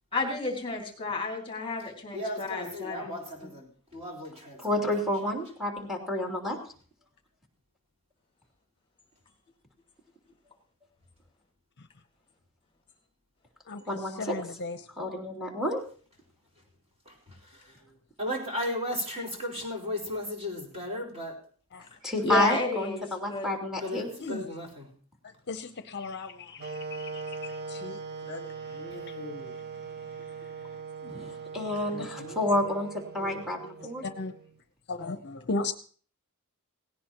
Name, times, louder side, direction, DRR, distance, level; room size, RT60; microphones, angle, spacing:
voice 1, 0.1-3.5 22.2-23.5, left 3 dB, 25° left, 2 dB, 2.5 m, -32 dB
voice 2, 2.1-4.9 17.1-17.7 18.2-21.4 23.8-24.9, left 1 dB, 30° right, -4 dB, 4.5 m, -35 dB
voice 3, 4.6-6.6 13.9-14.3 15.0-15.8 22.0-24.1 31.1-34.0, left 1 dB, ahead, 0 dB, 3.0 m, -30 dB
voice 4, 13.7-14.8 21.7-21.9 24.2-24.4 25.2-29.6 31.0-31.2 31.9-32.4 33.2-33.3 34.0-34.3 34.9-35.7, left 3 dB, 50° left, 9 dB, 0.8 m, -37 dB
sound 1, 26.6-34.6, right 5 dB, 50° right, 0.8 m, -40 dB
17.5 x 17.0 x 3.0 m, 0.44 s
head